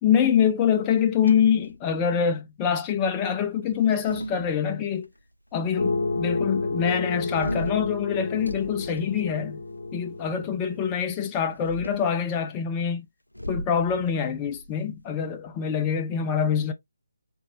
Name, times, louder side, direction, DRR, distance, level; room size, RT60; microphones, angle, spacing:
voice 1, 0.0-5.1 5.5-9.6 9.9-13.1 13.5-16.7, left 7 dB, 15° left, 0.4 m, -25 dB
sound 1, 0.9-2.3 3.6-5.0 7.3-9.9 11.4-12.2 13.3-15.7, equal, 90° left, 0.4 m, -38 dB
sound 2, 5.7-11.0, left 3 dB, 40° left, 1.3 m, -30 dB
3.7 x 3.4 x 2.6 m
figure-of-eight pair, 150°, 0 cm